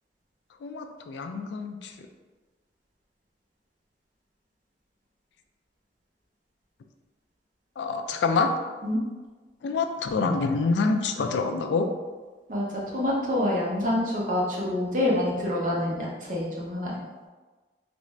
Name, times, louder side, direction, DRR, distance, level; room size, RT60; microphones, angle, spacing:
voice 1, 0.6-1.9 7.8-8.5 9.6-11.9, left 4 dB, 90° left, 6 dB, 0.3 m, -26 dB
voice 2, 12.5-17.0, left 1 dB, 45° right, -4 dB, 0.8 m, -27 dB
3.4 x 2.5 x 3.1 m, 1.3 s
head